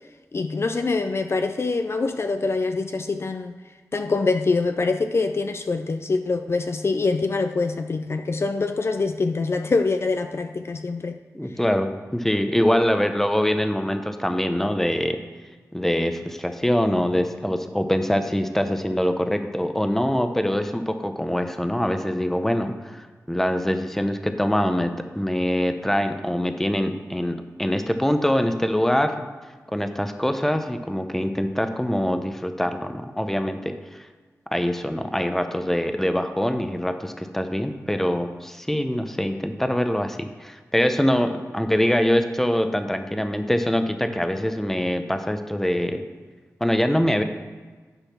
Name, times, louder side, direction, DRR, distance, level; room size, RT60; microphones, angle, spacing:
voice 1, 0.3-3.6 3.9-11.2, left 3 dB, 45° left, 7 dB, 0.4 m, -24 dB
voice 2, 11.3-15.2 15.7-29.2 29.7-34.1 34.5-46.0 46.6-47.2, equal, 5° left, 7 dB, 0.7 m, -24 dB
10.0 x 4.2 x 5.8 m, 1.4 s
cardioid pair, 65°, 6 cm